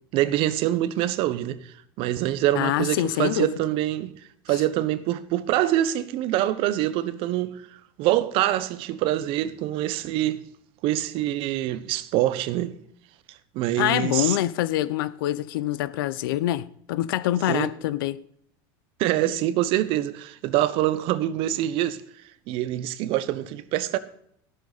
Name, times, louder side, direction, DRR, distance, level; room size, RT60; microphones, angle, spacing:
voice 1, 0.1-4.1 4.5-10.4 10.8-12.7 13.5-14.4 17.5-17.7 19.0-22.0 22.5-24.0, right 13 dB, 55° right, 1.1 m, -25 dB
voice 2, 2.5-3.5 13.8-18.2, left 14 dB, 80° left, 0.7 m, -25 dB
14.0 x 12.5 x 4.1 m
supercardioid pair, 135°, 11 cm